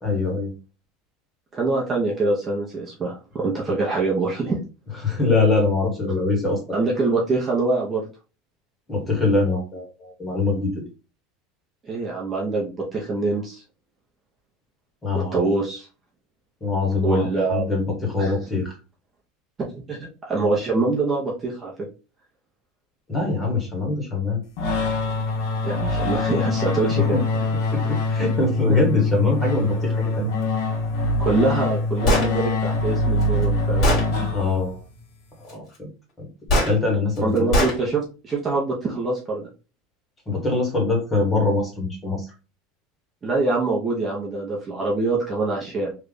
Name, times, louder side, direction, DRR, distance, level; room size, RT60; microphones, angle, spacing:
voice 1, 0.0-0.5 5.0-6.6 8.9-10.8 15.0-15.4 16.6-18.8 23.1-24.4 27.1-27.2 27.7-30.3 34.3-34.8 35.5-35.9 36.2-36.3 36.6-37.5 40.3-42.3, left 3 dB, 15° left, -1 dB, 1.4 m, -23 dB
voice 2, 1.5-4.6 6.7-8.0 11.8-13.6 15.1-15.9 17.0-17.6 18.2-18.4 19.7-21.7 25.6-27.2 31.2-33.9 37.2-39.5 43.2-45.9, right 3 dB, 20° right, -3 dB, 0.8 m, -24 dB
sound 1, 24.6-34.8, left 2 dB, 65° left, 1.2 m, -24 dB
Gunshot gunfire, 32.0-32.3 33.2-33.3 33.8-34.1 36.5-36.7 37.5-37.8, left 1 dB, 40° left, 2.1 m, -19 dB
3.3 x 2.4 x 3.8 m, 0.33 s
supercardioid pair, 155°, 0 cm